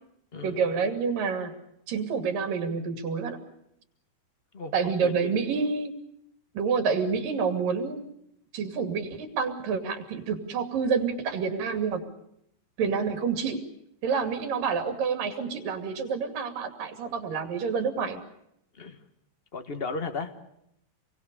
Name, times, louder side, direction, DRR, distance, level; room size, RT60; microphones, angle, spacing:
voice 1, 0.4-1.5 1.9-3.4 4.7-6.0 6.5-8.0 8.5-12.0 12.8-13.6 14.0-18.2, right 5 dB, 85° right, 7 dB, 4.4 m, -28 dB
voice 2, 4.5-5.2 18.8-19.0 19.5-20.3, left 4 dB, 35° left, 8 dB, 1.0 m, -35 dB
27.5 x 22.0 x 6.9 m, 0.76 s
omnidirectional pair, 3.8 m